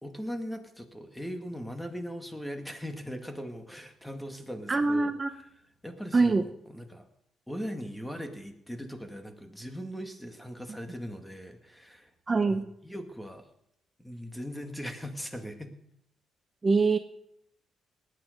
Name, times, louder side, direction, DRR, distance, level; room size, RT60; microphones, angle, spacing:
voice 1, 0.0-5.1 5.8-7.1 7.5-12.1 12.5-13.5 14.0-15.7, equal, 5° left, 6 dB, 2.0 m, -39 dB
voice 2, 4.7-5.3 6.1-6.5 12.3-12.6 16.6-17.0, right 3 dB, 30° right, 8 dB, 0.7 m, -23 dB
19.0 x 9.3 x 5.2 m, 0.78 s
cardioid pair, 90°, 0 cm